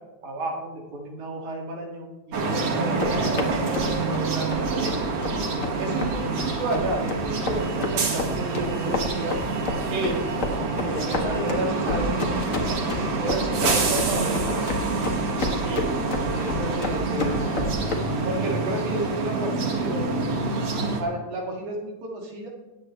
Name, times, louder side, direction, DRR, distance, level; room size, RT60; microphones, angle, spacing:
voice 1, 0.2-2.1 2.5-4.9 5.8-9.4 9.9-10.3 10.8-12.1 12.7-14.6 15.6-15.9 16.3-17.4 18.3-20.1 21.0-22.5, right 2 dB, 85° right, -1 dB, 3.7 m, -31 dB
sound 1, 2.3-21.0, right 3 dB, 50° right, 2.5 m, -27 dB
sound 2, 2.8-18.0, left 3 dB, 40° left, 1.1 m, -31 dB
voice 2, 10.5-11.8 12.1-12.8 14.0-14.9 17.2-17.9, left 3 dB, 90° left, -2 dB, 4.3 m, -38 dB
20.0 x 8.8 x 3.2 m, 1.1 s
omnidirectional pair, 3.4 m